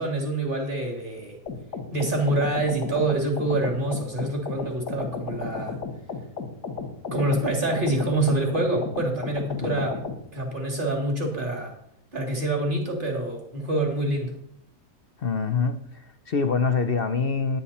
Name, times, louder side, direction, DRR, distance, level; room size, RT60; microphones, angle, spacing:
voice 1, 0.0-1.4 1.9-5.8 7.1-10.0 10.3-11.7 12.1-14.3, right 2 dB, 30° right, 1 dB, 3.2 m, -26 dB
sound 1, 1.5-10.2, left 4 dB, 75° left, 2.2 m, -34 dB
voice 2, 9.6-9.9 15.2-17.6, left 5 dB, 50° left, 10 dB, 0.7 m, -25 dB
17.0 x 10.0 x 4.3 m, 0.72 s
omnidirectional pair, 1.8 m